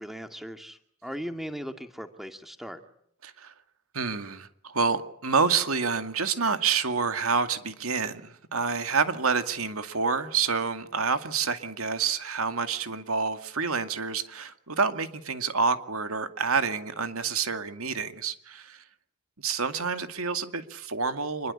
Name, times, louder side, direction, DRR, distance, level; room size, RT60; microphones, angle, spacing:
voice 1, 0.0-2.8, equal, ahead, 2.2 m, -38 dB
voice 2, 3.2-3.5 3.9-18.8 19.4-21.5, right 5 dB, 85° right, 2.3 m, -28 dB
27.0 x 22.0 x 9.8 m
head